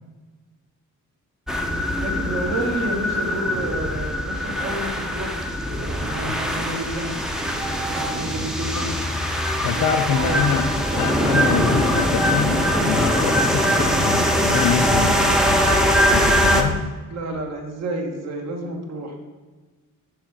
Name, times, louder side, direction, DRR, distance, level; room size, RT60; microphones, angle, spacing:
sound 1, 1.5-16.6, equal, ahead, 0.5 m, -22 dB
voice 1, 1.9-5.3 5.6-9.0 9.7-11.8 17.1-19.2, right 1 dB, 55° right, 3 dB, 1.3 m, -31 dB
voice 2, 9.6-10.7 11.0-16.9, left 8 dB, 75° left, 8 dB, 0.5 m, -26 dB
6.4 x 6.4 x 4.7 m, 1.3 s
wide cardioid pair, 165°, 32 cm